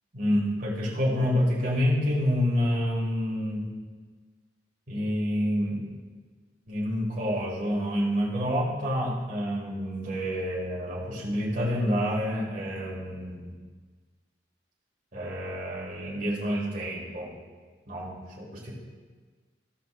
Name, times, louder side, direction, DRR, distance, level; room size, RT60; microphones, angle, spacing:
voice 1, 0.1-3.7 4.9-5.9 6.7-13.5 15.1-17.3 17.9-18.7, equal, 45° right, -6 dB, 2.0 m, -28 dB
15.0 x 7.3 x 2.5 m, 1.4 s
head